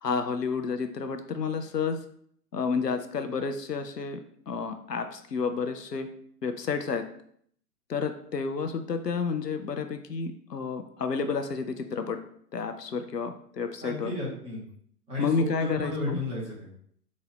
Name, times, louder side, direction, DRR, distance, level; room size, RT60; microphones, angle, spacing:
voice 1, 0.0-2.0 2.5-4.2 4.5-6.1 6.4-7.0 7.9-12.2 12.5-14.1 15.2-16.2, left 5 dB, 80° left, 7 dB, 0.7 m, -30 dB
voice 2, 13.8-14.6 15.1-16.7, left 2 dB, 10° right, -6 dB, 1.4 m, -33 dB
4.1 x 2.8 x 4.6 m, 0.64 s
figure-of-eight pair, 115°, 48 cm